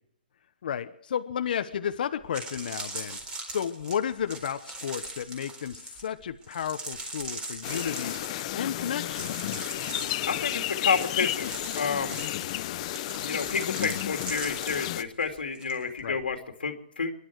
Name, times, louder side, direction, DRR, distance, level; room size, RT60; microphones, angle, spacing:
voice 1, 0.6-3.2 3.5-8.1 8.5-9.3 16.0-16.2, left 8 dB, 65° left, 8 dB, 1.0 m, -32 dB
sound 1, 1.7-1.8 2.2-15.7 16.0-16.3, right 2 dB, 15° right, 4.2 m, -40 dB
sound 2, 7.6-15.0, left 14 dB, 40° left, 0.8 m, -32 dB
voice 2, 10.3-12.2 13.2-17.1, left 5 dB, 90° left, 5 dB, 2.4 m, -30 dB
25.0 x 11.5 x 4.8 m, 0.72 s
hypercardioid pair, 145°, 5 cm